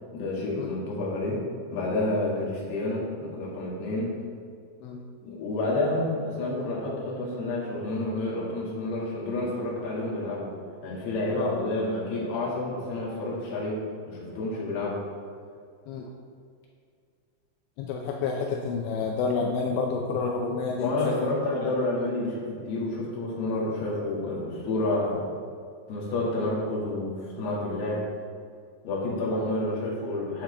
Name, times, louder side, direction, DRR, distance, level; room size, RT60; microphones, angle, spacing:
voice 1, 0.1-1.4 1.7-4.1 5.2-10.5 10.8-13.8 14.1-15.0 20.8-25.3 25.9-28.1 28.8-30.4, left 2 dB, 60° left, -5 dB, 3.7 m, -29 dB
voice 2, 11.3-11.7 15.9-16.1 17.8-21.1, left 4 dB, 80° left, 0 dB, 2.7 m, -29 dB
10.0 x 7.7 x 3.3 m, 2.3 s
omnidirectional pair, 5.6 m